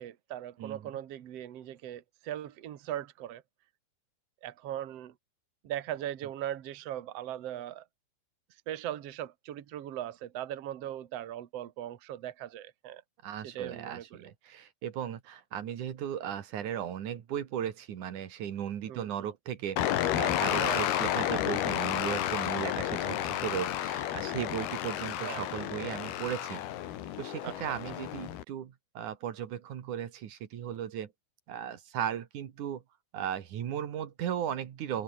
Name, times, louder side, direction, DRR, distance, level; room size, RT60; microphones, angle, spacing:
voice 1, 0.0-3.4 4.4-5.1 5.6-7.8 8.7-13.0 13.5-14.2 18.9-19.3 20.5-20.9 25.2-25.4 27.4-27.8, right 12 dB, 85° right, 1.4 m, -39 dB
voice 2, 0.6-0.9 13.2-19.8 20.2-26.6 27.2-31.1 31.5-32.8 33.1-35.0, right 10 dB, 55° right, 2.7 m, -36 dB
sound 1, 19.8-28.4, left 12 dB, 65° left, 3.4 m, -31 dB
omnidirectional pair, 5.3 m